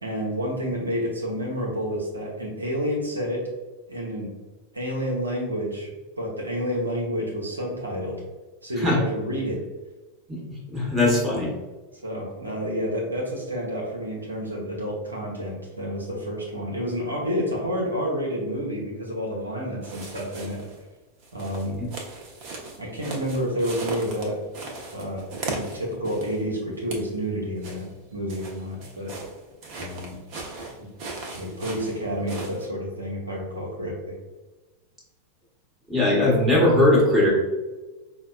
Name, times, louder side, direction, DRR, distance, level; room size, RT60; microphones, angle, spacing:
voice 1, 0.0-3.5 3.9-4.3 4.7-8.2 8.6-9.6 12.0-20.6 21.3-21.8 22.8-24.4 24.9-29.1 29.8-30.2 30.8-30.9 31.3-34.1, equal, 80° right, -2 dB, 0.7 m, -29 dB
voice 2, 10.7-11.5 21.8-21.9 35.9-37.3, left 1 dB, 15° right, -3 dB, 1.1 m, -19 dB
sound 1, 19.8-20.8 21.2-26.4 26.7-27.1 27.6-32.7, right 3 dB, 45° right, 0.7 m, -37 dB
5.0 x 2.2 x 2.2 m, 1.2 s
figure-of-eight pair, 90°, 0 cm